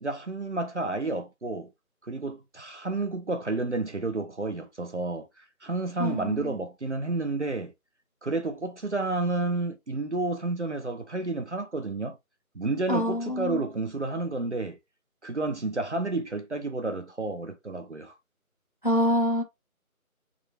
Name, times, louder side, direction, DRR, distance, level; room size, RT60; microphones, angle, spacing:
voice 1, 0.0-1.7 2.0-7.7 8.2-12.2 12.6-14.8 15.2-18.1, right 2 dB, 55° right, 0.6 m, -30 dB
voice 2, 6.0-6.6 12.9-13.6 18.8-19.4, left 1 dB, 35° left, 0.6 m, -26 dB
3.6 x 2.1 x 3.0 m
figure-of-eight pair, 165°, 43 cm